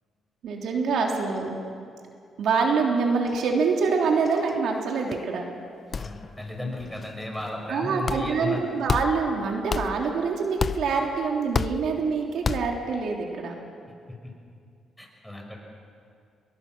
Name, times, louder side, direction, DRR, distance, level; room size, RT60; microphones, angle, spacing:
voice 1, 0.4-1.6 2.4-5.4 7.7-13.5, right 4 dB, 70° right, 0 dB, 3.4 m, -25 dB
sound 1, 3.2-3.5 3.8-3.9 4.2-4.8 5.1-5.3 5.9-6.5 6.8-7.4 8.1-8.5 8.9-9.4 9.7-10.2 10.6-11.1 11.5-12.0 12.4-12.9, left 5 dB, 40° left, 0.6 m, -31 dB
voice 2, 6.0-8.6 15.0-15.6, left 2 dB, 5° left, 1 dB, 6.3 m, -34 dB
28.5 x 22.0 x 6.3 m, 2.3 s
cardioid pair, 90°, 0 cm